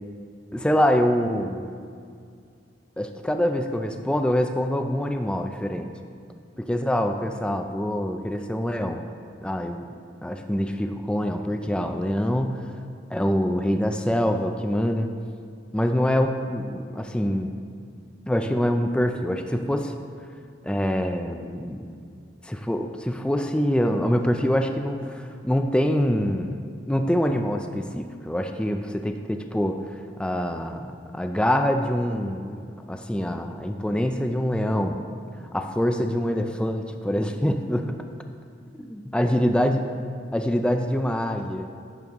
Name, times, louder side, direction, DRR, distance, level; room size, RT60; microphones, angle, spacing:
voice 1, 0.5-1.7 3.0-5.9 6.6-9.0 9.4-9.8 10.2-12.6 13.1-15.1 15.7-17.5 18.3-19.9 20.6-21.9 22.4-35.0 35.5-38.0 38.8-39.9 40.3-41.7, equal, 5° left, 5 dB, 0.3 m, -25 dB
10.5 x 7.0 x 3.6 m, 2.3 s
head